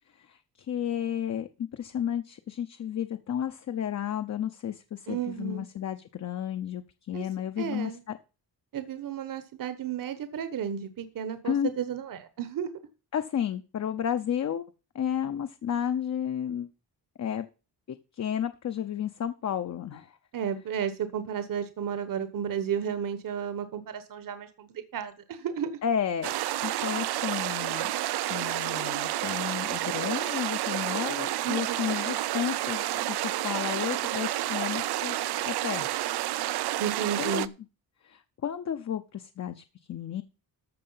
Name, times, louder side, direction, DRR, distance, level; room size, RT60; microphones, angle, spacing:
voice 1, 0.2-8.2 11.4-11.7 13.1-14.6 14.9-16.7 17.2-17.5 17.9-20.2 25.8-26.3 26.6-27.9 28.3-35.9 37.2-37.5 38.0-40.2, left 9 dB, 45° left, 8 dB, 0.8 m, -32 dB
voice 2, 5.1-5.6 7.1-7.2 7.6-8.0 8.7-12.7 20.3-25.8 31.4-31.8 36.8-37.5, right 8 dB, 60° right, 11 dB, 1.3 m, -33 dB
sound 1, 26.2-37.5, right 14 dB, 90° right, 0.7 m, -30 dB
14.0 x 6.2 x 5.6 m, 0.33 s
cardioid pair, 140°, 38 cm